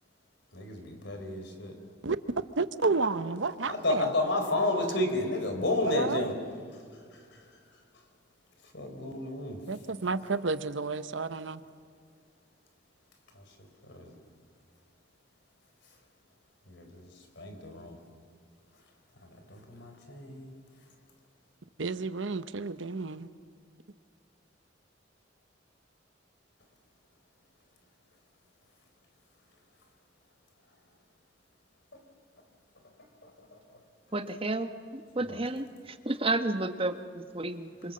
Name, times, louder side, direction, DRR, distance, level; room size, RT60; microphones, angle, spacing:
voice 1, 0.5-1.7 3.7-6.4 8.7-9.6 13.9-14.1 16.7-17.1 17.4-18.0 19.2-20.5 33.2-33.3 35.2-35.5, left 2 dB, 65° left, 5 dB, 4.5 m, -31 dB
voice 2, 2.6-4.1 5.8-6.2 9.0-9.2 9.7-11.6 21.8-23.3, right 3 dB, 75° right, 12 dB, 0.9 m, -31 dB
voice 3, 34.1-35.6 36.1-37.9, right 2 dB, 30° right, 8 dB, 1.3 m, -31 dB
27.5 x 26.5 x 7.7 m, 2.1 s
head